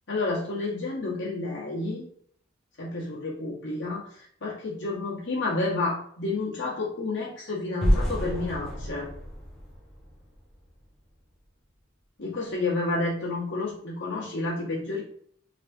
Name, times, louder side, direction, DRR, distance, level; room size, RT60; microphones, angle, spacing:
voice 1, 0.1-2.0 2.8-9.1 12.2-15.0, left 2 dB, 60° left, -6 dB, 1.4 m, -30 dB
sound 1, 7.8-10.8, equal, ahead, 1.0 m, -28 dB
3.5 x 3.3 x 2.7 m, 0.62 s
head